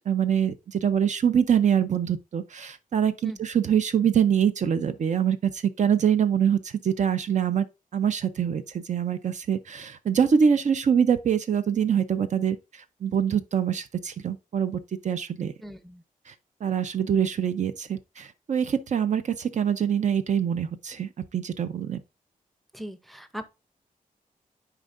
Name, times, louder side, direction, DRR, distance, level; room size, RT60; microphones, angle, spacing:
voice 1, 0.1-7.7 7.9-12.6 13.0-15.5 16.3-16.4 16.6-22.0, right 8 dB, 55° right, 0.5 m, -24 dB
voice 2, 15.6-16.0 22.7-23.5, equal, ahead, 0.6 m, -39 dB
9.9 x 4.6 x 2.5 m
wide cardioid pair, 135°, 15 cm